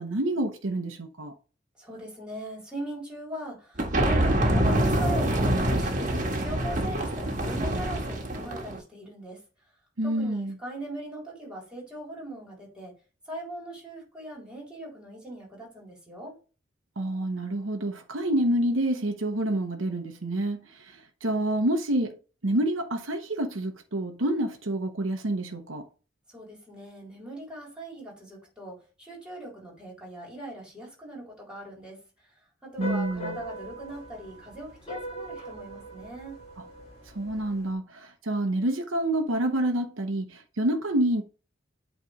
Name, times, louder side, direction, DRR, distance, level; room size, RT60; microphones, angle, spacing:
voice 1, 0.0-1.3 10.0-10.5 17.0-22.1 22.4-25.9 32.8-33.4 37.1-41.2, right 1 dB, 80° right, 1.0 m, -28 dB
voice 2, 1.8-9.4 10.0-12.9 13.3-16.3 26.3-32.0 32.6-36.4, right 1 dB, 5° right, 3.8 m, -40 dB
sound 1, 3.8-8.8, right 1 dB, 40° right, 1.6 m, -25 dB
sound 2, 32.8-37.7, equal, 30° left, 2.5 m, -40 dB
8.5 x 3.3 x 5.0 m
head